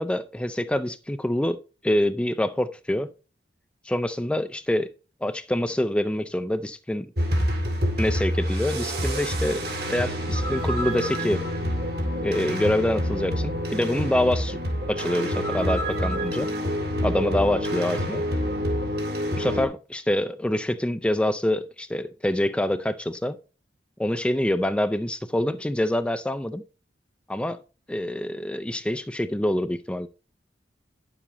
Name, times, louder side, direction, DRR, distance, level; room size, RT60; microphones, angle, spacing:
voice 1, 0.0-3.1 3.9-4.9 5.2-7.1 8.0-11.4 12.2-14.6 14.9-16.5 17.0-18.2 19.3-23.4 24.0-26.6 27.3-27.6 27.9-30.1, left 1 dB, 5° left, 0.4 m, -26 dB
sound 1, 7.2-19.7, equal, 60° right, 2.1 m, -27 dB
9.9 x 7.1 x 2.9 m
head